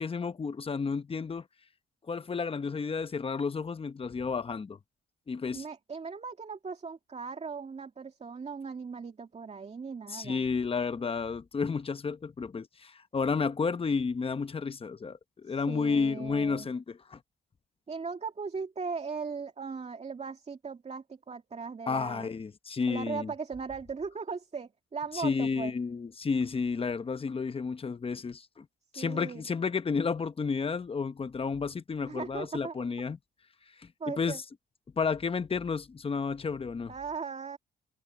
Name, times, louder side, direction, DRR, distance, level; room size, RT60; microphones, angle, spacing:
voice 1, 0.0-1.4 2.1-4.8 5.3-5.6 10.1-17.2 21.9-23.3 25.1-28.7 28.9-33.2 34.1-34.4 35.0-36.9, left 5 dB, 30° left, 0.9 m, -31 dB
voice 2, 5.5-10.5 15.5-16.7 17.9-22.3 22.9-25.7 29.0-29.5 32.0-32.8 34.0-34.4 36.9-37.6, right 5 dB, 35° right, 2.5 m, -38 dB
cardioid pair, 90°, 20 cm